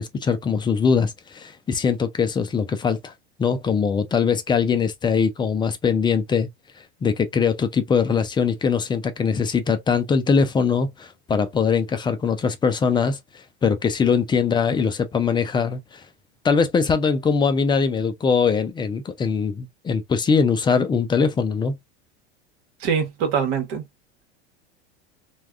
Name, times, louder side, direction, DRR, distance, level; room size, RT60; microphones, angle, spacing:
voice 1, 0.0-3.1 3.4-6.5 7.0-13.2 13.6-15.8 16.4-21.8, left 6 dB, 15° left, 0.4 m, -21 dB
voice 2, 22.8-23.8, right 7 dB, 55° right, 1.2 m, -23 dB
3.3 x 2.3 x 2.3 m
hypercardioid pair, 95°, 34 cm